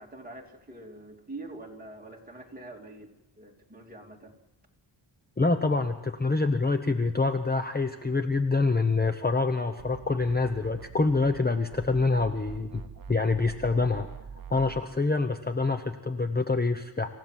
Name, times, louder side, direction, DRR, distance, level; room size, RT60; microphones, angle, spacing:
voice 1, 0.0-4.3, right 2 dB, 20° right, 0 dB, 3.0 m, -45 dB
voice 2, 5.4-12.8 13.1-14.1 14.5-17.1, left 3 dB, 20° left, 6 dB, 0.9 m, -26 dB
sound 1, 9.8-11.5 11.7-14.8, right 7 dB, 45° right, 0.9 m, -44 dB
27.0 x 15.5 x 7.5 m, 1.1 s
wide cardioid pair, 145°, 47 cm